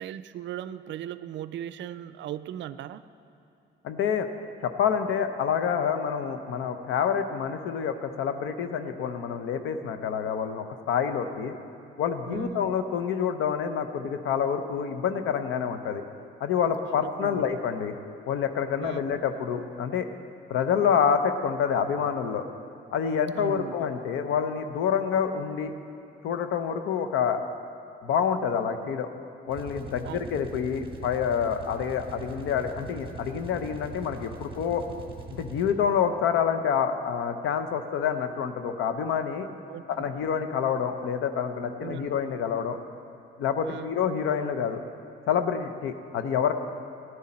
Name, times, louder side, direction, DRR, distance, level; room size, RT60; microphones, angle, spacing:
voice 1, 0.0-3.0 12.3-12.6 17.0-17.5 18.8-19.1 23.3-23.8 30.0-30.2 39.7-40.2 41.8-42.2 43.6-44.0, right 11 dB, 70° right, 14 dB, 0.4 m, -38 dB
voice 2, 3.8-4.3 4.6-11.5 12.0-16.0 16.4-17.9 18.3-20.1 20.5-22.4 22.9-25.7 26.2-27.4 28.0-29.1 29.5-34.8 35.4-39.5 39.9-42.8 43.4-44.8 45.3-46.5, left 7 dB, 85° left, 8 dB, 0.7 m, -27 dB
sound 1, 29.5-36.0, right 3 dB, 25° right, 1.3 m, -42 dB
14.0 x 10.0 x 4.3 m, 2.8 s
cardioid pair, 90°, 20 cm